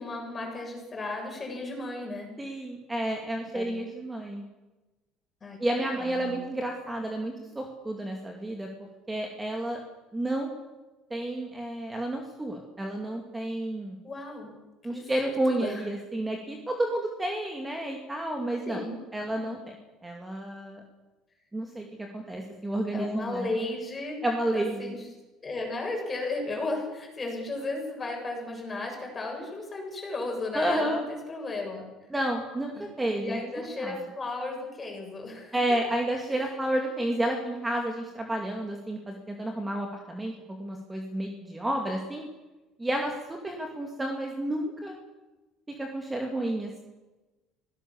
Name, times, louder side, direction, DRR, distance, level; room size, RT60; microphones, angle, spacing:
voice 1, 0.0-2.3 3.5-3.8 5.4-6.4 14.0-14.5 14.9-15.8 18.7-19.6 22.9-24.3 24.5-25.1 25.4-31.8 32.7-32.8 33.1-35.6, left 2 dB, 20° left, 1 dB, 7.3 m, -35 dB
voice 2, 2.4-4.4 5.6-8.7 9.1-9.8 10.1-10.6 11.1-14.0 14.8-18.8 19.1-19.6 20.0-20.8 21.5-21.9 22.1-23.7 24.2-25.0 30.5-31.0 32.1-33.4 33.8-34.0 35.5-42.3 42.8-44.9 45.8-46.8, right 1 dB, 10° right, 2 dB, 2.4 m, -31 dB
24.5 x 17.5 x 7.2 m, 1.1 s
cardioid pair, 135°, 0 cm